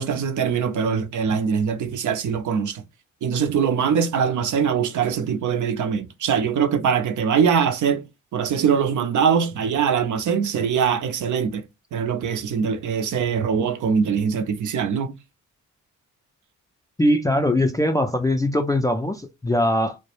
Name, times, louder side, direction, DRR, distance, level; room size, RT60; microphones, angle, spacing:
voice 1, 0.0-2.8 3.2-8.0 8.3-11.6 11.9-15.1, right 7 dB, 50° right, 0.5 m, -22 dB
voice 2, 17.0-20.0, left 1 dB, 10° left, 0.4 m, -21 dB
2.2 x 2.0 x 3.0 m
hypercardioid pair, 50°, 40 cm